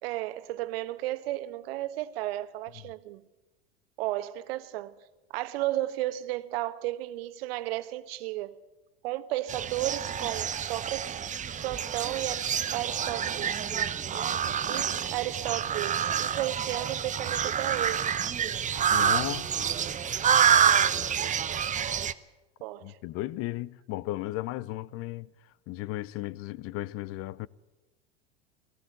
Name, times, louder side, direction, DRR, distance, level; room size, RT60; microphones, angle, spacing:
voice 1, 0.0-3.2 4.0-4.9 5.3-8.6 9.0-11.2 11.6-13.6 14.7-18.1 22.6-23.0, right 15 dB, 65° right, 1.3 m, -33 dB
sound 1, 9.5-22.1, right 8 dB, 25° right, 0.9 m, -27 dB
voice 2, 18.9-19.7 22.8-25.3 25.7-27.5, left 17 dB, 45° left, 0.7 m, -35 dB
18.5 x 15.5 x 9.5 m
hypercardioid pair, 90°, 32 cm